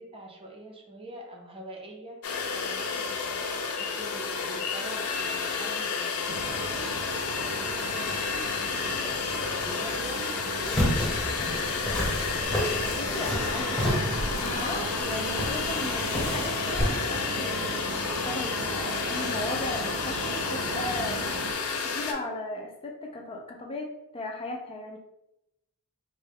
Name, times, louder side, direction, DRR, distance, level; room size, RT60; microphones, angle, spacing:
voice 1, 0.0-2.2 2.5-11.6, right 1 dB, 25° right, 1 dB, 0.5 m, -44 dB
sound 1, 2.2-22.1, left 5 dB, 90° left, 0.5 m, -31 dB
sound 2, 6.3-21.5, right 3 dB, 70° right, 0.4 m, -37 dB
sound 3, 10.6-16.8, equal, 5° left, 0.8 m, -30 dB
voice 2, 13.0-21.3 21.8-25.0, left 2 dB, 25° left, 1 dB, 0.4 m, -36 dB
3.6 x 2.1 x 3.4 m, 0.85 s
head